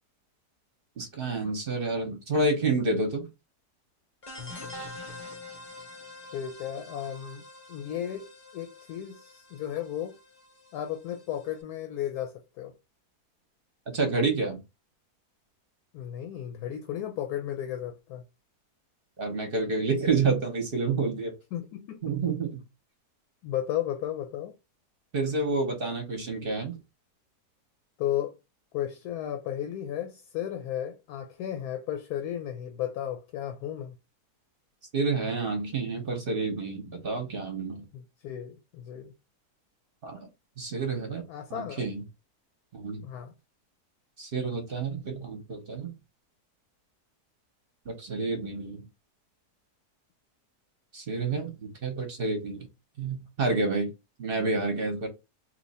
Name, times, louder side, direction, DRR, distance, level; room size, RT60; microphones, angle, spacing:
voice 1, 1.0-3.3 13.9-14.6 19.2-21.3 22.0-22.6 25.1-26.7 34.9-37.9 40.0-40.2 40.6-41.2 41.5-42.0 42.7-43.0 44.2-45.9 47.9-48.8 50.9-52.7 53.0-53.9 54.2-55.1, right 3 dB, 45° right, 0.8 m, -29 dB
sound 1, 4.2-11.5, left 2 dB, 35° left, 0.6 m, -45 dB
voice 2, 6.3-8.3 8.5-10.2 10.7-12.7 15.9-18.2 21.5-22.1 23.4-24.5 28.0-28.3 28.7-33.9 37.9-39.1 41.3-41.9 43.0-43.3, left 11 dB, 75° left, 1.1 m, -34 dB
2.9 x 2.4 x 4.1 m
omnidirectional pair, 1.7 m